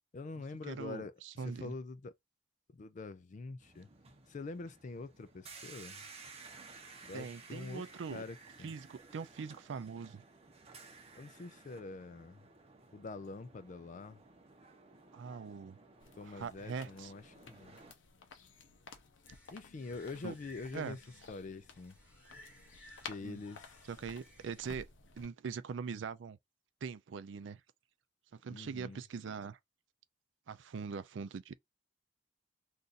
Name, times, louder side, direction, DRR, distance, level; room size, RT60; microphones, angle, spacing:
voice 1, 0.1-1.1 1.4-2.1 2.7-3.9 4.3-6.0 7.1-7.8 8.1-8.7 11.2-12.5 12.9-14.2 16.2-17.8 19.5-21.0 21.3-22.0 23.1-23.8 28.5-29.0, left 3 dB, 40° left, 0.4 m, -45 dB
voice 2, 0.7-1.7 7.1-8.2 8.6-10.2 15.1-15.8 16.2-17.1 20.2-20.3 20.7-21.0 23.2-23.4 23.9-24.9 25.2-26.4 26.8-27.6 28.3-29.6 30.5-31.5, right 5 dB, 75° right, 0.4 m, -42 dB
sound 1, 3.6-17.9, right 4 dB, 35° right, 0.8 m, -56 dB
sound 2, 16.0-25.3, left 5 dB, 85° left, 0.7 m, -54 dB
sound 3, 19.3-24.6, left 1 dB, 10° left, 1.2 m, -60 dB
2.5 x 2.5 x 3.9 m
head